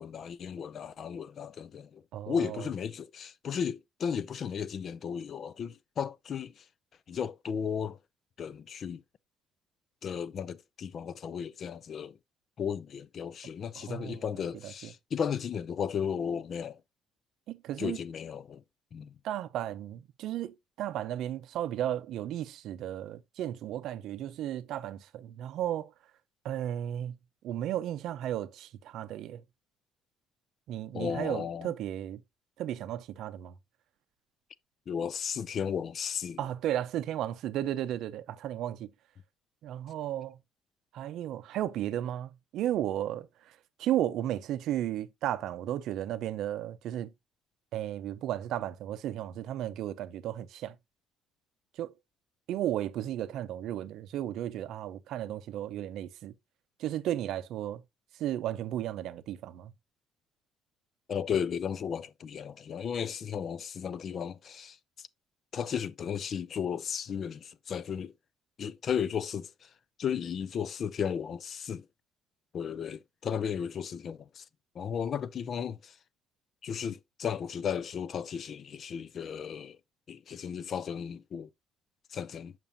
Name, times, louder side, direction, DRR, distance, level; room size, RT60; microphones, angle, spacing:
voice 1, 0.0-6.6 7.1-8.0 8.4-9.0 10.0-12.2 12.6-16.8 17.8-18.6 18.9-19.1 30.9-31.7 34.9-36.4 61.1-64.8 65.5-68.1 68.6-69.7 70.0-71.9 72.5-74.4 74.8-75.9 76.6-79.8 80.1-81.5 82.1-82.5, left 7 dB, 35° left, 0.3 m, -34 dB
voice 2, 2.1-2.7 13.8-14.9 17.5-18.0 19.2-25.9 26.4-27.1 27.4-29.4 30.7-32.2 32.6-33.6 36.4-38.9 39.6-40.4 40.9-47.1 47.7-50.8 51.7-51.9 52.5-56.3 56.8-57.8 58.2-59.7, right 12 dB, 60° right, 0.5 m, -34 dB
7.1 x 5.9 x 2.6 m
cardioid pair, 170°, 0 cm